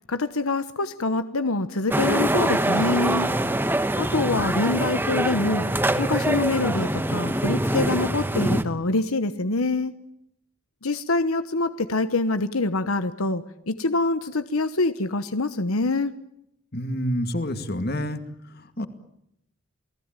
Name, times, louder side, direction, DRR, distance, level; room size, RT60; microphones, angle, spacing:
voice 1, 0.1-3.3 4.0-5.7 6.0-9.9 10.8-16.1, left 2 dB, 80° left, 11 dB, 1.1 m, -25 dB
sound 1, 1.9-8.6, right 1 dB, 10° right, 1.3 m, -24 dB
voice 2, 16.7-18.2 18.6-18.9, equal, 45° left, 9 dB, 2.3 m, -28 dB
29.0 x 19.0 x 9.1 m, 0.79 s
head